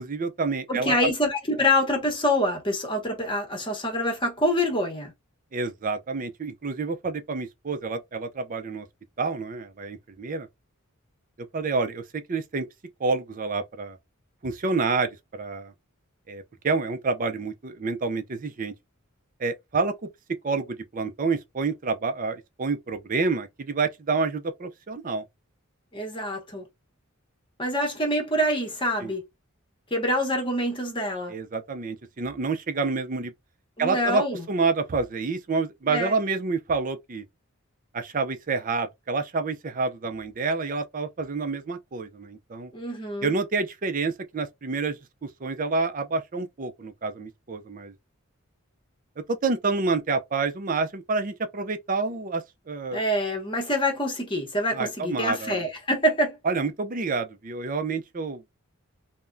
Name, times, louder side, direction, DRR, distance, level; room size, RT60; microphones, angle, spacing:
voice 1, 0.0-1.1 5.5-8.9 9.2-10.5 11.4-12.7 13.0-14.0 14.4-15.7 16.3-18.7 19.4-19.9 20.4-25.2 29.0-29.1 31.3-33.3 33.8-37.2 37.9-42.7 43.2-47.9 49.3-53.0 54.7-55.6 56.4-58.4, right 4 dB, 40° right, 0.5 m, -28 dB
voice 2, 0.7-5.1 25.9-26.7 27.6-29.2 29.9-31.3 33.8-34.4 35.9-36.2 42.7-43.3 52.9-56.4, left 1 dB, 25° left, 1.0 m, -26 dB
3.4 x 2.2 x 2.5 m
head